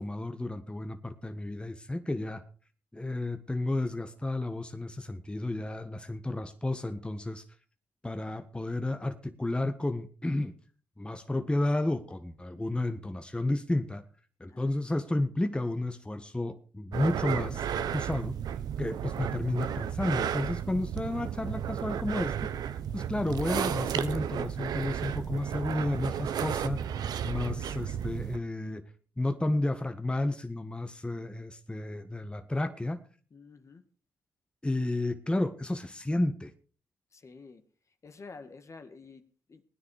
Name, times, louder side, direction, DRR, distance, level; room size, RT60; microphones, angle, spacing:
voice 1, 0.0-2.4 2.9-7.4 8.0-10.5 11.0-14.0 14.4-18.4 18.8-22.5 22.9-26.9 27.2-28.9 29.2-33.0 34.6-36.5, left 2 dB, 15° left, 8 dB, 1.5 m, -32 dB
sound 1, 16.9-28.4, right 9 dB, 70° right, 1.0 m, -33 dB
voice 2, 18.6-19.1 33.3-33.8 37.1-39.6, left 4 dB, 45° left, 8 dB, 2.0 m, -50 dB
18.5 x 9.8 x 4.9 m, 0.40 s
supercardioid pair, 55°, 7 cm